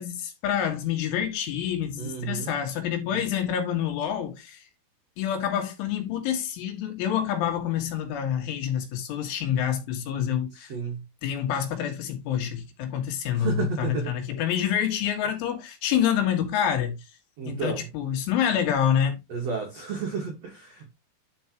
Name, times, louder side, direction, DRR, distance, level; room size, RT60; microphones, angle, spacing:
voice 1, 0.0-4.6 5.2-10.7 11.2-17.0 17.5-19.2, left 9 dB, 75° left, 4.0 m, -27 dB
voice 2, 2.0-2.5 3.1-3.2 10.5-11.0 13.3-14.1 17.4-17.9 19.3-20.9, right 5 dB, 80° right, 1.4 m, -32 dB
11.0 x 4.8 x 2.9 m
omnidirectional pair, 5.8 m